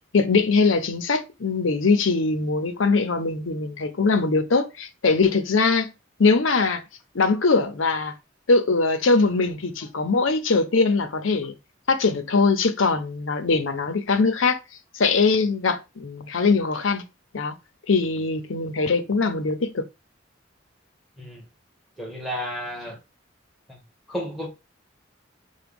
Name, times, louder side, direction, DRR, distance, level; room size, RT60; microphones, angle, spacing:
voice 1, 0.1-5.9 6.2-6.8 7.1-8.1 8.5-11.5 11.9-14.6 14.9-17.0 17.3-17.6 17.9-19.9, left 4 dB, 80° left, 0.7 m, -21 dB
voice 2, 22.0-23.0 24.1-24.5, equal, ahead, 1.3 m, -32 dB
5.8 x 2.3 x 3.4 m
head